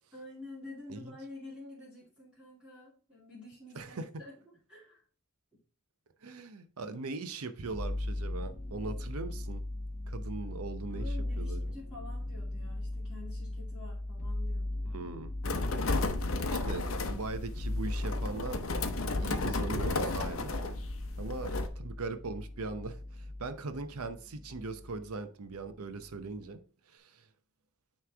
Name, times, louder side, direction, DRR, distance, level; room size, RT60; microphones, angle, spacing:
voice 1, 0.1-5.0 10.4-10.5 10.9-14.9 21.1-21.7, left 2 dB, 5° right, 2.5 m, -49 dB
voice 2, 3.8-4.1 6.2-9.6 10.1-11.1 11.4-11.7 14.9-15.3 16.5-18.8 19.2-20.5 21.2-26.6 26.9-27.2, right 3 dB, 85° right, 0.7 m, -40 dB
sound 1, 7.7-25.1 25.5-26.3, left 1 dB, 35° left, 0.9 m, -38 dB
sound 2, 15.4-21.7, left 3 dB, 70° left, 0.7 m, -33 dB
9.5 x 3.2 x 3.4 m
head